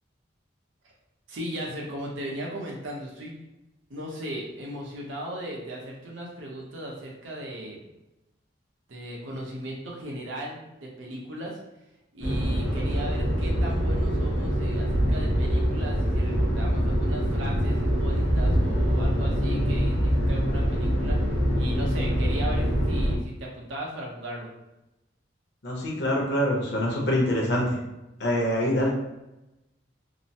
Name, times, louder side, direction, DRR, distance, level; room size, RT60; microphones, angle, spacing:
voice 1, 1.3-3.3 3.9-7.8 8.9-11.6 12.1-21.3 21.6-24.5, equal, 85° right, -2 dB, 0.7 m, -37 dB
sound 1, 12.2-23.1, equal, 75° left, 1.1 m, -24 dB
voice 2, 25.6-27.8 28.2-28.9, equal, 60° left, -3 dB, 0.8 m, -25 dB
2.9 x 2.0 x 2.7 m, 0.95 s
head